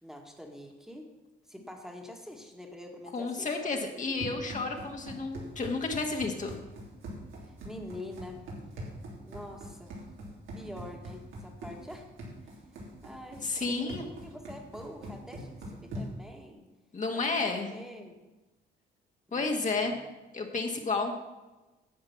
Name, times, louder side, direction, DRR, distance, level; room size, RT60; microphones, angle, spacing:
voice 1, 0.0-1.1 1.5-3.5 7.4-8.4 9.2-10.0 10.5-12.1 13.0-16.7 17.1-18.2 19.3-20.1, left 1 dB, 5° right, 1 dB, 1.8 m, -46 dB
voice 2, 3.1-6.6 13.4-14.0 16.9-17.7 19.3-20.0 20.3-21.2, left 3 dB, 40° left, 2 dB, 1.6 m, -31 dB
Run, 3.8-16.3, right 1 dB, 80° right, 3.3 m, -43 dB
10.5 x 7.8 x 5.9 m, 1.1 s
cardioid pair, 90°, 20 cm